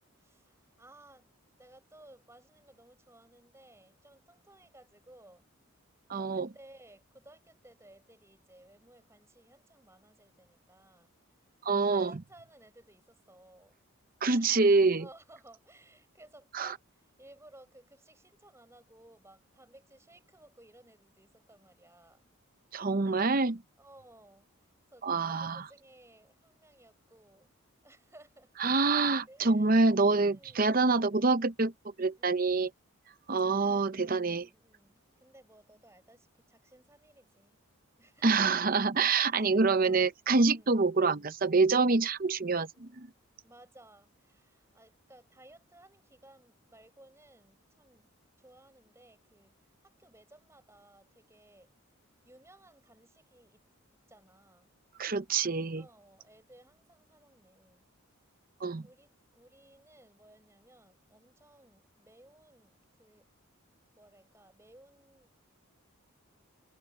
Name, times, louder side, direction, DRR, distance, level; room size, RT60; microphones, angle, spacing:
voice 1, 0.2-1.3 1.6-5.5 6.2-11.1 11.8-13.8 14.3-14.6 14.9-22.3 23.8-24.5 24.9-27.5 27.8-28.5 29.3-29.8 30.3-30.8 32.2-32.5 34.0-37.6 38.0-38.6 39.1-40.1 40.5-40.8 42.7-43.0 43.4-48.1 48.4-51.7 52.2-53.6 54.1-54.7 55.8-57.9 58.8-63.3 64.0-65.3, right 1 dB, 10° right, 5.9 m, -58 dB
voice 2, 6.1-6.5 11.6-12.2 14.2-15.0 16.5-16.7 22.7-23.6 25.0-25.6 28.6-31.7 32.0-32.7 33.3-34.5 38.2-43.1 55.0-55.8 58.6-58.9, right 3 dB, 40° right, 0.7 m, -26 dB
head